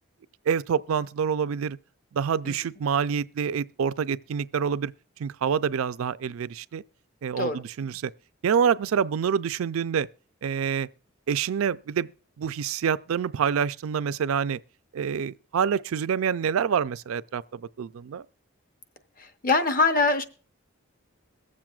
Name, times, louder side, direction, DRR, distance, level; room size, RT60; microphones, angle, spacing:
voice 1, 0.5-1.8 2.1-4.9 5.2-6.8 7.2-8.1 8.4-10.1 10.4-10.9 11.3-12.1 12.4-14.6 14.9-18.2, right 7 dB, 80° right, 0.4 m, -27 dB
voice 2, 19.4-20.2, left 3 dB, 40° left, 0.7 m, -22 dB
22.0 x 7.4 x 2.3 m
head